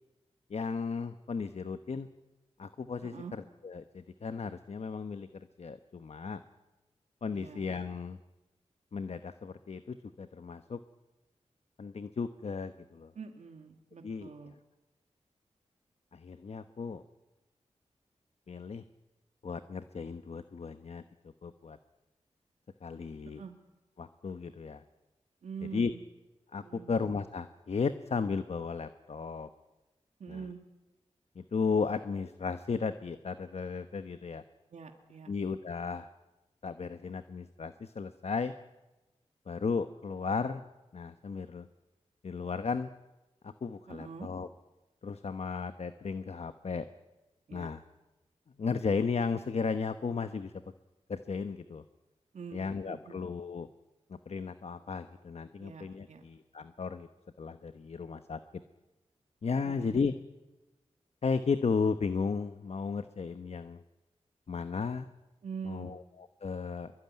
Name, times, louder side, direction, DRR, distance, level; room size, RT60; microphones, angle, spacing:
voice 1, 0.5-2.1 2.6-6.4 7.2-8.2 8.9-10.8 11.8-13.1 14.0-14.3 16.1-17.0 18.5-18.8 19.4-21.8 22.8-23.4 24.0-24.8 25.7-25.9 26.5-29.5 30.3-30.4 31.3-34.4 35.3-36.1 36.6-38.5 39.5-40.6 40.9-41.7 42.2-42.9 43.4-44.5 45.0-46.8 47.5-47.8 48.6-50.5 51.1-51.8 52.5-53.7 54.1-57.1 57.4-58.4 59.4-60.1 61.2-63.8 64.5-65.1 65.6-66.9, left 5 dB, 60° left, 10 dB, 1.1 m, -35 dB
voice 2, 3.0-3.3 7.3-7.6 13.2-14.5 23.4-23.5 25.4-26.0 26.6-26.9 30.2-30.6 34.7-35.3 43.9-44.3 47.5-47.7 52.3-53.2 55.6-56.2 59.6-60.1 65.4-66.0, right 6 dB, 80° right, 5 dB, 2.3 m, -44 dB
23.5 x 23.0 x 9.7 m, 1.1 s
cardioid pair, 55°, 12 cm